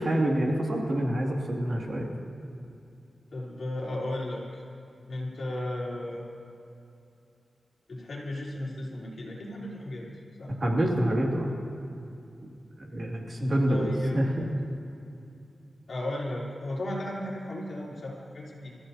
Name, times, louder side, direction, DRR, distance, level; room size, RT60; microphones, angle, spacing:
voice 1, 0.0-2.1 10.6-11.5 12.8-14.5, right 1 dB, 45° right, -1 dB, 2.4 m, -27 dB
voice 2, 3.3-4.6 5.1-6.2 7.9-10.1 10.4-10.5 13.7-14.2 15.9-18.7, left 1 dB, 65° left, -4 dB, 3.7 m, -35 dB
27.0 x 14.5 x 2.8 m, 2.6 s
wide cardioid pair, 90°, 0 cm